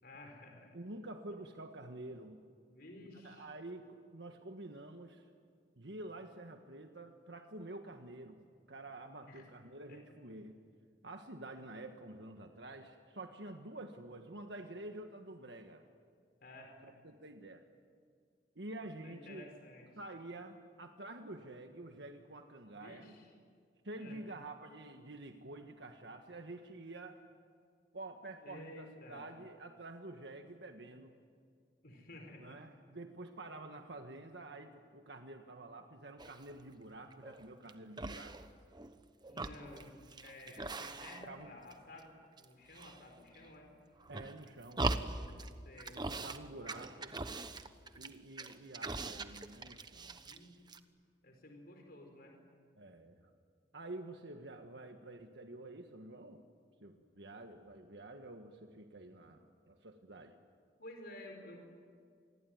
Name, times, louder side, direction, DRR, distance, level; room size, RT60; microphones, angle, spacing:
voice 1, 0.0-0.8 2.7-3.5 9.2-9.5 9.9-10.0 16.4-17.0 19.0-19.9 22.8-23.3 24.0-24.4 28.4-29.2 31.8-32.6 39.3-39.9 40.2-43.7 45.6-46.0 50.2-50.5 51.2-52.4 60.8-61.6, left 1 dB, 60° left, 3 dB, 4.7 m, -53 dB
voice 2, 0.7-2.4 3.2-5.2 5.8-8.4 8.7-10.6 11.0-15.8 16.8-17.6 18.5-19.5 19.9-23.1 23.8-27.2 27.9-31.1 32.4-38.4 40.5-40.6 41.3-41.6 44.1-44.9 45.9-47.1 47.9-50.2 52.8-53.3 53.7-56.4 56.8-60.4, right 2 dB, 70° right, 5 dB, 1.5 m, -49 dB
sound 1, 36.2-36.6 37.1-37.7 38.0-39.0 39.2-41.4 41.7-42.4 42.7-43.5 44.0-45.5 45.8-46.4 46.7-50.4 50.7-50.8, right 2 dB, 25° right, 1.1 m, -41 dB
27.5 x 21.0 x 9.5 m, 2.1 s
head